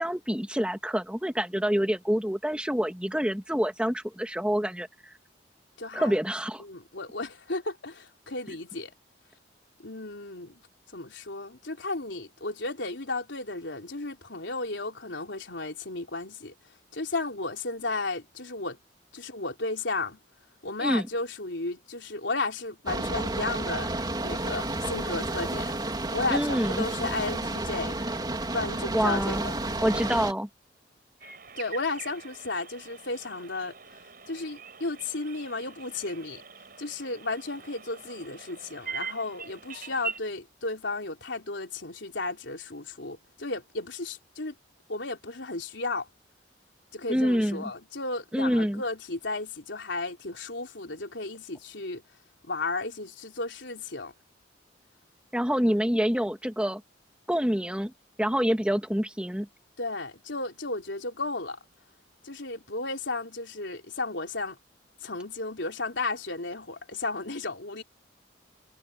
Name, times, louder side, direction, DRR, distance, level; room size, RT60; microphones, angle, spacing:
voice 1, 0.0-5.1 5.9-6.6 20.8-21.1 26.3-26.9 28.9-29.5 29.8-30.5 47.1-47.7 48.3-48.8 55.3-56.8 57.3-57.9 58.2-59.5, equal, 5° right, 1.7 m, -27 dB
voice 2, 5.8-6.2 6.6-8.9 9.8-10.6 10.9-16.5 16.9-18.8 19.1-20.2 20.6-23.9 24.2-25.7 26.1-28.0 28.5-29.6 31.6-33.8 34.3-36.4 36.8-44.5 44.9-46.1 46.9-52.0 52.4-54.1 59.8-61.6 62.2-64.6 65.0-67.8, left 3 dB, 80° left, 3.6 m, -34 dB
sound 1, 22.9-30.3, right 2 dB, 25° right, 3.4 m, -31 dB
sound 2, 31.2-40.2, right 5 dB, 50° right, 7.0 m, -43 dB
head